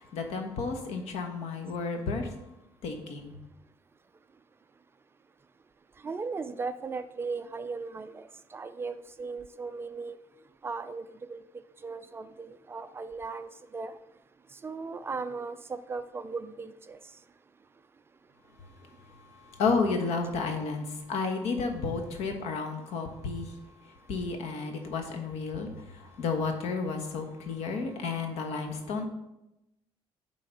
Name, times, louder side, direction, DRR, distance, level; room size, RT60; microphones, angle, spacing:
voice 1, 0.0-2.3 2.8-3.3 19.5-23.5 24.1-29.0, left 4 dB, 85° left, 4 dB, 1.2 m, -32 dB
voice 2, 6.0-8.2 8.5-10.2 10.6-11.0 11.3-11.4 11.8-13.9 14.6-17.0, right 4 dB, 20° right, 11 dB, 0.3 m, -37 dB
9.1 x 3.8 x 5.2 m, 0.91 s
cardioid pair, 155°, 11 cm